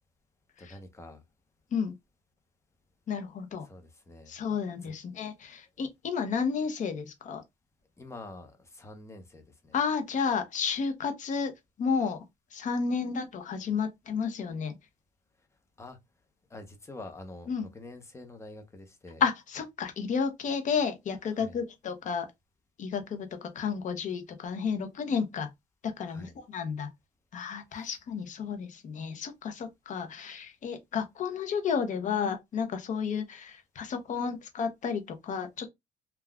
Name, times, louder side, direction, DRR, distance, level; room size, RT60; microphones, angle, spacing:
voice 1, 0.6-1.2 3.6-4.3 4.8-5.0 8.0-9.7 15.8-16.0 16.5-19.2 21.4-21.6 26.1-26.3 27.7-27.9, left 2 dB, 15° left, 0.8 m, -46 dB
voice 2, 3.1-3.7 4.3-7.4 9.7-11.5 11.8-12.2 12.5-14.7 17.5-17.7 19.2-22.3 22.8-25.5 25.8-26.9 27.3-35.7, left 6 dB, 45° left, 0.7 m, -32 dB
3.5 x 2.3 x 2.3 m
cardioid pair, 110°, 17 cm